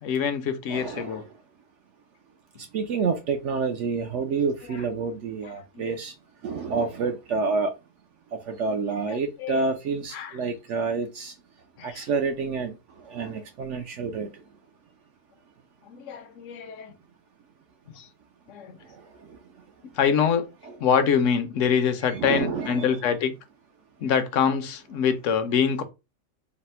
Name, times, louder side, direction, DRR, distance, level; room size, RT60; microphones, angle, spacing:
voice 1, 0.0-1.2 5.7-5.9 9.1-9.6 10.1-10.3 11.8-12.0 15.9-16.9 17.9-18.1 18.5-18.8 19.9-20.5 20.8-23.3 24.0-25.8, left 7 dB, 65° left, 0.9 m, -25 dB
voice 2, 0.7-1.3 2.7-6.1 6.4-7.7 8.3-11.3 11.8-12.7 13.0-14.3 18.9-19.0 22.1-22.9, right 4 dB, 65° right, 0.8 m, -28 dB
4.1 x 2.0 x 4.2 m
omnidirectional pair, 1.5 m